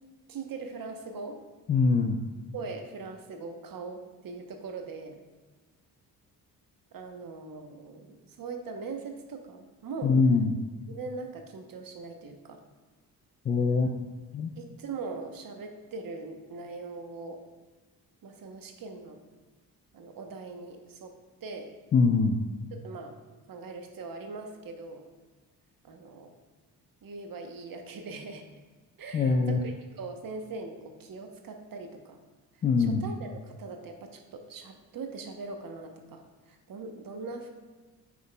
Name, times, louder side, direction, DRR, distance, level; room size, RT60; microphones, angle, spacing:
voice 1, 0.3-1.4 2.5-5.2 6.9-10.2 10.9-12.6 14.6-17.4 18.2-19.2 19.9-21.1 21.4-21.7 22.7-23.1 23.5-25.1 25.8-26.3 27.0-28.5 29.0-32.2 32.8-37.5, right 4 dB, 45° right, 5 dB, 1.0 m, -41 dB
voice 2, 1.7-2.2 10.0-10.5 13.5-13.9 14.3-14.5 21.9-22.4 29.1-29.6 32.6-33.0, left 4 dB, 20° left, 4 dB, 0.3 m, -23 dB
8.4 x 5.4 x 2.3 m, 1.3 s
figure-of-eight pair, 45°, 49 cm